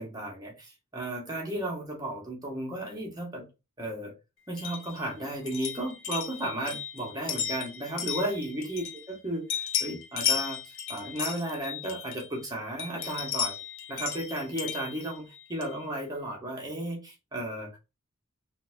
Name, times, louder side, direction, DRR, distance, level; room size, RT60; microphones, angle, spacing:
voice 1, 0.0-3.5 3.8-4.1 4.5-13.6 13.9-17.8, right 1 dB, 20° right, 1.1 m, -34 dB
sound 1, 4.6-9.2 9.5-12.4 12.8-15.8, left 8 dB, 65° left, 0.6 m, -35 dB
3.9 x 2.6 x 2.3 m
head